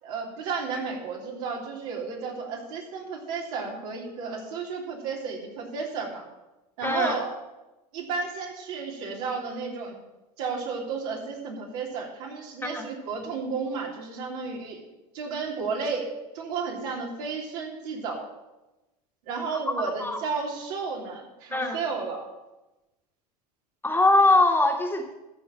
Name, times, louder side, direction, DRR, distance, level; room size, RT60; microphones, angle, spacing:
voice 1, 0.0-6.2 6.8-7.3 7.9-10.0 10.4-14.8 15.1-16.1 16.3-18.3 19.3-22.3, right 5 dB, 65° right, 0 dB, 3.1 m, -32 dB
voice 2, 6.8-7.2 12.6-12.9 20.0-20.2 21.5-21.8 23.8-25.1, left 2 dB, 10° left, 2 dB, 1.7 m, -22 dB
13.5 x 4.8 x 8.7 m, 1.0 s
hypercardioid pair, 90°, 20 cm